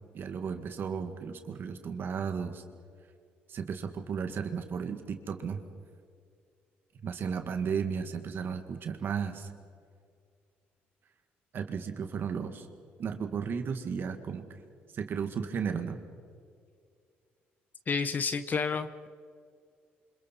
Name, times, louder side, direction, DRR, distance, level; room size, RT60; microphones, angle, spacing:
voice 1, 0.1-2.6 3.5-5.6 7.0-9.5 11.5-12.7 13.0-14.4 14.9-16.0, right 6 dB, 55° right, 6 dB, 2.0 m, -34 dB
voice 2, 17.9-19.1, left 5 dB, 40° left, 11 dB, 1.0 m, -30 dB
28.5 x 26.0 x 4.6 m, 2.2 s
cardioid pair, 80°, 4 cm